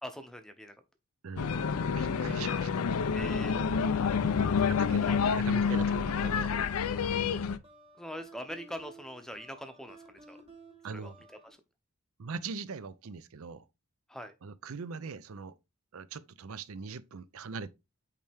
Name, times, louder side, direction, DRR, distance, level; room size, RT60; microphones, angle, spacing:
voice 1, 0.0-0.7 3.1-3.6 4.6-4.7 5.1-5.2 8.0-10.4 10.9-11.1 11.4-11.6 14.1-14.3, equal, ahead, 0.7 m, -42 dB
voice 2, 1.2-1.6 2.0-2.8 4.0-6.5 10.8-11.1 12.2-13.7 14.4-15.5 15.9-17.7, right 5 dB, 75° right, 0.5 m, -41 dB
sound 1, 1.4-7.6, left 6 dB, 90° left, 0.5 m, -28 dB
sound 2, 1.4-11.5, right 3 dB, 25° right, 1.2 m, -54 dB
8.4 x 3.3 x 3.4 m
head